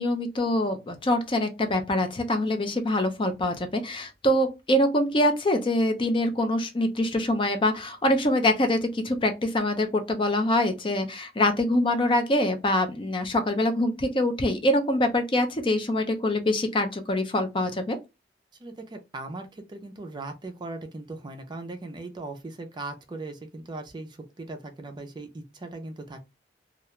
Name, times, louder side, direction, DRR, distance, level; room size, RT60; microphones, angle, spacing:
voice 1, 0.0-18.0, left 1 dB, 30° left, 0.5 m, -24 dB
voice 2, 18.6-26.2, right 2 dB, 25° right, 0.4 m, -39 dB
2.4 x 2.2 x 2.9 m
head